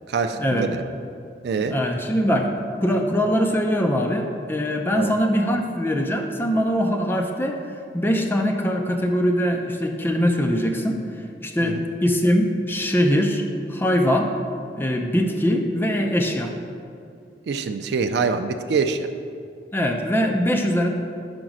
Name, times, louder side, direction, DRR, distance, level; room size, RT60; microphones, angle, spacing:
voice 1, 0.1-0.9 1.4-1.8 5.0-5.1 11.6-11.9 17.5-19.1, right 5 dB, 70° right, 7 dB, 0.3 m, -25 dB
voice 2, 1.7-7.6 7.9-11.0 11.4-13.4 13.7-14.3 14.8-16.5 19.7-20.9, equal, 10° left, 3 dB, 0.4 m, -22 dB
5.2 x 4.9 x 6.1 m, 2.4 s
head